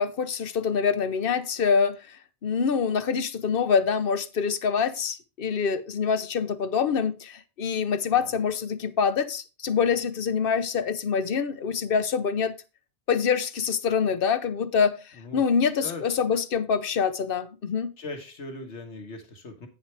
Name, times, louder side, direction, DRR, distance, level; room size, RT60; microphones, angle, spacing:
voice 1, 0.0-2.2 2.4-12.5 13.1-15.0 15.3-17.9, left 6 dB, 55° left, 12 dB, 0.9 m, -25 dB
voice 2, 18.0-19.7, left 3 dB, 85° left, 4 dB, 1.8 m, -39 dB
9.5 x 8.1 x 3.3 m, 0.30 s
omnidirectional pair, 1.1 m